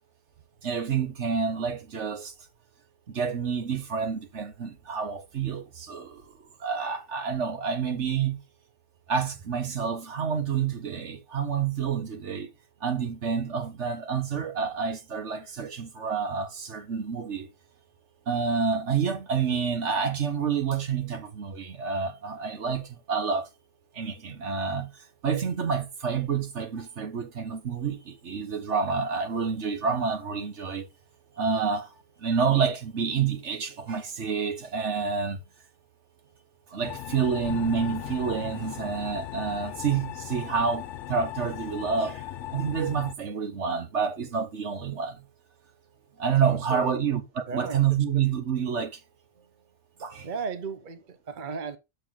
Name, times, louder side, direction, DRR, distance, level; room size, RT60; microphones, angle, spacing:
voice 1, 0.6-2.3 3.1-6.2 6.6-8.4 9.1-12.5 12.8-17.5 18.3-23.5 23.9-24.9 25.2-30.9 31.4-31.9 32.2-35.4 36.7-42.2 42.5-45.2 46.2-49.0 50.0-50.3, right 6 dB, 70° right, 1.5 m, -28 dB
sound 1, 36.8-43.1, left 12 dB, 80° left, 0.9 m, -38 dB
sound 2, 37.4-41.5, left 5 dB, 45° left, 0.8 m, -44 dB
voice 2, 46.4-47.0 47.5-47.8 48.1-48.2 50.2-51.8, right 5 dB, 45° right, 0.9 m, -34 dB
6.8 x 6.8 x 3.8 m
omnidirectional pair, 1.2 m